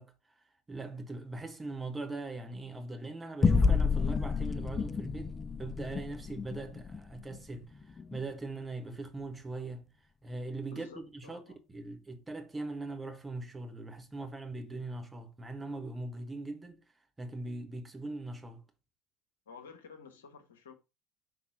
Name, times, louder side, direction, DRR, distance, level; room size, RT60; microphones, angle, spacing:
voice 1, 0.0-9.9 10.2-18.6, right 2 dB, 15° right, 1.4 m, -41 dB
sound 1, 3.4-8.2, left 4 dB, 20° left, 0.5 m, -30 dB
voice 2, 10.7-11.6 19.5-20.7, left 6 dB, 70° left, 1.1 m, -51 dB
5.9 x 3.5 x 5.8 m
figure-of-eight pair, 65°, 0 cm